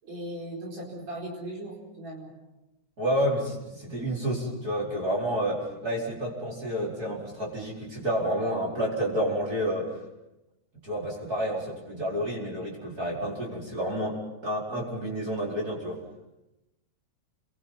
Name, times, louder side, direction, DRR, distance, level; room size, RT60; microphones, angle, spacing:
voice 1, 0.0-2.3 14.8-14.9, right 1 dB, 65° right, -3 dB, 5.8 m, -38 dB
voice 2, 3.0-10.0 10.8-16.0, equal, 30° right, -4 dB, 5.1 m, -30 dB
29.5 x 22.5 x 5.7 m, 0.97 s
omnidirectional pair, 3.4 m